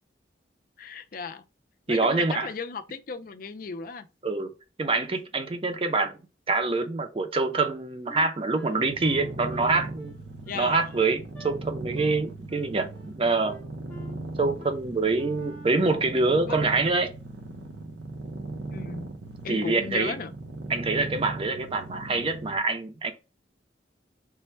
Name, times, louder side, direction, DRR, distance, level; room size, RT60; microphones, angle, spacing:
voice 1, 0.8-1.4 1.9-4.1 10.4-10.9 16.5-16.7 18.7-19.1 19.4-20.3, left 4 dB, 50° left, 0.4 m, -36 dB
voice 2, 1.9-2.5 4.2-4.5 4.8-6.2 6.5-10.1 10.5-13.6 14.4-17.1 19.5-20.1 20.7-23.1, right 3 dB, 30° right, 0.6 m, -25 dB
Wind instrument woodwind instrument, 8.1-11.6 12.0-12.2 12.5-13.2 13.4-14.2 14.6-14.8 15.1-15.8, left 1 dB, 5° left, 0.7 m, -46 dB
sound 1, 8.8-22.6, right 2 dB, 85° right, 0.6 m, -38 dB
3.3 x 2.2 x 4.3 m
head